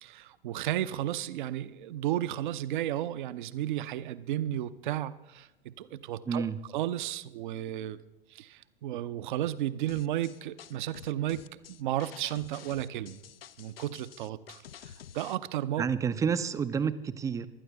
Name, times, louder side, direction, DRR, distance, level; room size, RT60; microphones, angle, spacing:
voice 1, 0.0-6.4 6.7-8.0 8.3-13.2 13.6-15.8, right 12 dB, 50° right, 14 dB, 0.7 m, -33 dB
voice 2, 6.3-6.6 15.8-17.5, right 6 dB, 10° right, 13 dB, 0.5 m, -29 dB
sound 1, 9.9-15.4, left 9 dB, 70° left, 0.6 m, -49 dB
25.5 x 12.0 x 3.4 m, 0.98 s
figure-of-eight pair, 90°, 31 cm